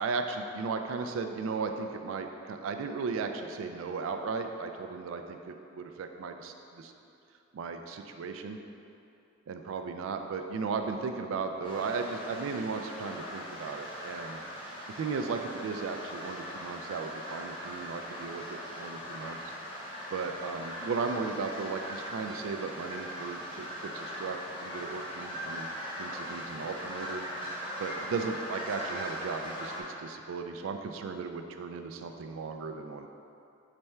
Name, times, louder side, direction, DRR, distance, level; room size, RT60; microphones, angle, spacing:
voice 1, 0.0-6.9 7.5-8.6 9.5-14.4 15.0-19.4 20.1-25.7 26.0-27.2 27.8-29.7 30.0-33.1, right 4 dB, 75° right, 6 dB, 0.3 m, -36 dB
sound 1, 11.6-29.8, equal, 25° left, 0.6 m, -40 dB
3.3 x 3.3 x 4.2 m, 2.6 s
head